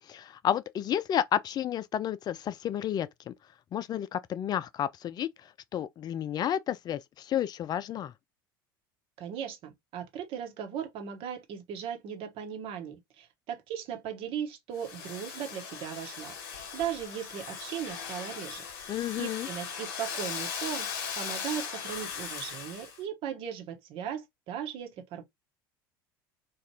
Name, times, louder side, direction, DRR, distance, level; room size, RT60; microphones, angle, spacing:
voice 1, 0.0-3.3 3.7-5.3 5.7-8.1 18.9-19.5, left 10 dB, 35° left, 0.4 m, -31 dB
voice 2, 9.2-18.6 19.2-20.9 21.1-25.2, right 9 dB, 50° right, 1.1 m, -37 dB
Domestic sounds home sounds, 14.8-23.0, left 6 dB, 65° left, 1.2 m, -38 dB
3.2 x 2.4 x 2.8 m
figure-of-eight pair, 75°, 12 cm